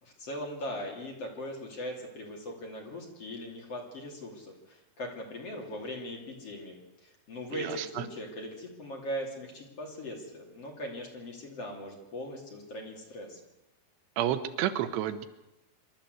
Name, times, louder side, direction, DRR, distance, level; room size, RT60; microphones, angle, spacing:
voice 1, 0.0-13.4, equal, 40° left, 0 dB, 3.6 m, -40 dB
voice 2, 7.5-8.1 14.2-15.3, right 11 dB, 80° right, 10 dB, 3.1 m, -31 dB
26.0 x 12.5 x 8.0 m, 0.96 s
omnidirectional pair, 4.8 m